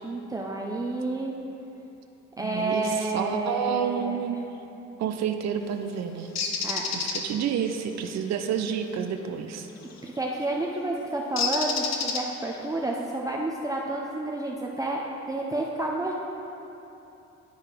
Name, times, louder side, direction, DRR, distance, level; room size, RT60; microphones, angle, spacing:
voice 1, 0.0-1.3 2.4-4.2 6.6-6.8 10.0-16.1, right 2 dB, 10° right, -2 dB, 0.6 m, -30 dB
voice 2, 2.4-4.4 5.0-6.3 6.9-9.7, right 8 dB, 60° right, 7 dB, 0.6 m, -29 dB
Bird, 6.4-7.2 9.8-10.1 11.4-12.6, left 5 dB, 60° left, 0.9 m, -28 dB
10.5 x 4.7 x 5.0 m, 3.0 s
cardioid pair, 90°, 30 cm